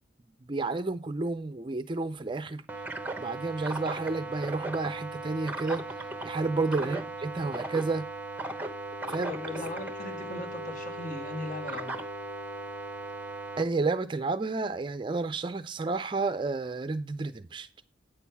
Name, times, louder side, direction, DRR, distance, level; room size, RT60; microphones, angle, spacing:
voice 1, 0.5-2.6 3.2-5.9 6.2-8.1 9.1-9.3 13.6-17.7, right 3 dB, 25° right, 0.4 m, -31 dB
sound 1, 2.7-13.6, right 3 dB, 10° right, 0.8 m, -37 dB
sound 2, 8.6-15.1, left 13 dB, 70° left, 2.9 m, -47 dB
voice 2, 9.3-12.0, left 2 dB, 45° left, 1.4 m, -39 dB
9.1 x 6.4 x 5.7 m
head